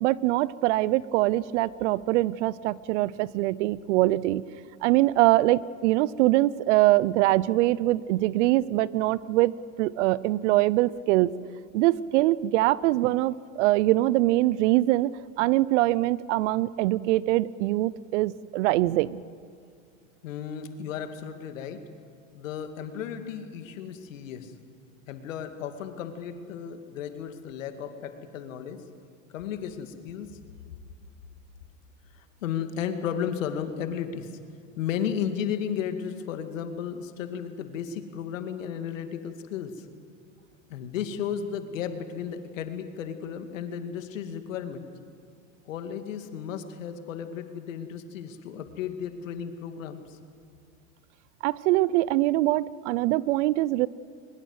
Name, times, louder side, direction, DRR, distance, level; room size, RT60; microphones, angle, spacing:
voice 1, 0.0-4.4 4.8-11.3 11.7-19.2 51.4-53.9, right 17 dB, 65° right, 21 dB, 0.7 m, -23 dB
voice 2, 20.2-21.9 22.3-24.6 25.1-28.9 29.3-30.4 32.1-34.4 34.8-39.9 40.7-44.9 45.7-50.2, left 8 dB, 75° left, 8 dB, 2.4 m, -34 dB
23.0 x 21.0 x 8.0 m, 2.2 s
hypercardioid pair, 100°, 39 cm